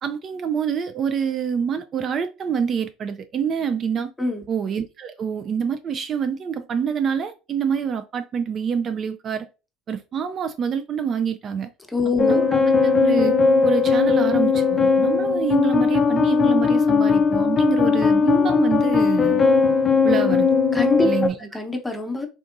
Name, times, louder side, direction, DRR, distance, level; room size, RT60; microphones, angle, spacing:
voice 1, 0.0-4.1 4.5-9.5 9.9-11.7 12.2-13.4 13.6-19.4 20.0-20.5 21.0-21.4, right 7 dB, 40° right, 0.3 m, -26 dB
voice 2, 11.9-12.5 20.7-22.3, left 3 dB, 10° left, 0.9 m, -25 dB
sound 1, 12.2-21.3, left 5 dB, 30° left, 0.4 m, -18 dB
3.6 x 2.6 x 2.5 m
hypercardioid pair, 75°, 0 cm